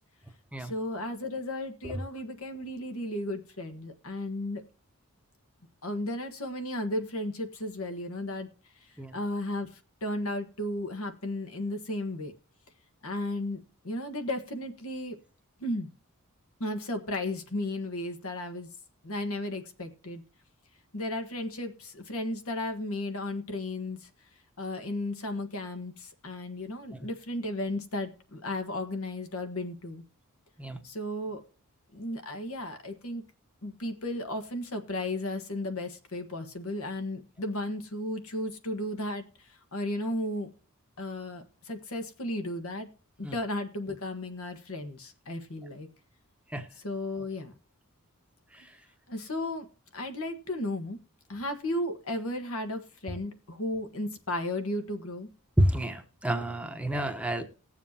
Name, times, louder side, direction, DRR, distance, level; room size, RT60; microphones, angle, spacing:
voice 1, 0.6-4.6 5.8-8.5 8.8-12.3 13.0-15.2 15.6-15.9 16.6-18.7 19.0-20.2 20.9-24.1 24.6-30.0 30.8-31.4 31.9-33.2 33.6-40.5 41.0-42.9 43.2-45.9 46.7-47.5 49.1-49.7 49.9-51.0 51.3-55.3, left 1 dB, 70° left, 7 dB, 1.4 m, -34 dB
voice 2, 55.6-57.4, right 1 dB, 5° right, 6 dB, 0.9 m, -28 dB
19.5 x 7.3 x 2.8 m, 0.40 s
head